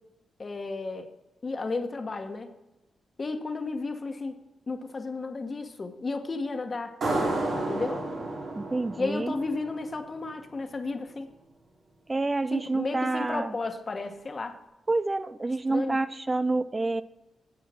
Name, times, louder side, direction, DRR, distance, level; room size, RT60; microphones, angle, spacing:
voice 1, 0.4-1.1 1.4-2.5 3.2-4.4 4.7-6.9 7.7-8.0 9.0-11.3 12.5-14.6 15.7-16.0, left 3 dB, 40° left, 6 dB, 1.4 m, -33 dB
sound 1, 7.0-10.3, right 2 dB, 70° right, 3.9 m, -31 dB
voice 2, 8.6-9.4 12.1-13.5 14.9-17.0, right 2 dB, 25° right, 14 dB, 0.4 m, -28 dB
10.5 x 8.0 x 4.4 m, 0.98 s
cardioid pair, 55°, 0 cm